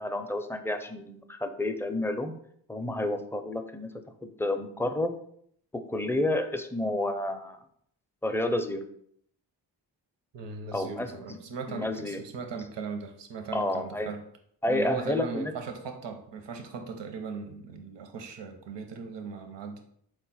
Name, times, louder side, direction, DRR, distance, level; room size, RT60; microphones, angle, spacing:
voice 1, 0.0-2.3 2.7-3.9 4.2-5.1 5.7-7.6 8.2-8.8 10.7-11.4 11.7-12.2 13.5-14.1 14.6-15.5, left 1 dB, 5° left, 7 dB, 0.4 m, -30 dB
voice 2, 10.3-14.2 14.7-19.8, right 5 dB, 65° right, 6 dB, 0.8 m, -38 dB
4.1 x 2.4 x 4.0 m, 0.67 s
supercardioid pair, 45°, 46 cm